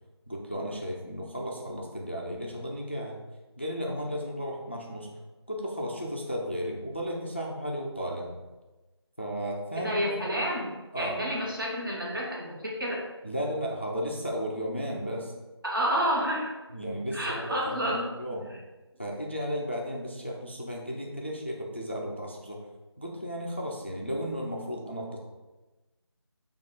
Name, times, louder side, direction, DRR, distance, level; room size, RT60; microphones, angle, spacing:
voice 1, 0.3-3.2 3.6-5.1 5.5-8.3 9.2-10.2 10.9-11.2 13.2-15.3 16.7-18.5 19.0-22.6 23.0-25.2, equal, 25° left, -1 dB, 0.4 m, -34 dB
voice 2, 9.8-13.0 15.6-16.5 17.1-18.1, equal, 50° right, -3 dB, 1.3 m, -29 dB
5.4 x 2.3 x 4.2 m, 1.2 s
figure-of-eight pair, 175°, 14 cm